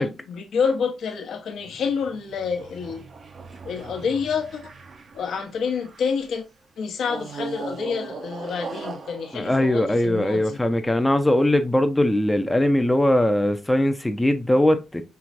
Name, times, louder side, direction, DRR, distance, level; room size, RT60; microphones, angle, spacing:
voice 1, 0.0-3.0 3.6-4.6 5.1-6.4 6.8-10.6, left 6 dB, 70° left, 0.8 m, -28 dB
sound 1, 1.6-6.2 7.0-10.6, right 4 dB, 50° right, 0.6 m, -39 dB
voice 2, 9.3-15.1, left 1 dB, 10° left, 0.5 m, -20 dB
4.6 x 3.0 x 2.5 m
cardioid pair, 85°, 0 cm